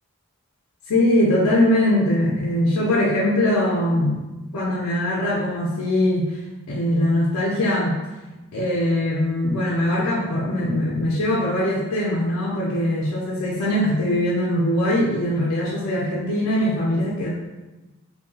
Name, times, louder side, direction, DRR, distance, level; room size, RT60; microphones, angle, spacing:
voice 1, 0.9-4.2 4.5-6.4 6.7-8.0 8.5-17.3, left 1 dB, 85° left, -5 dB, 0.4 m, -21 dB
2.6 x 2.2 x 2.7 m, 1.1 s
head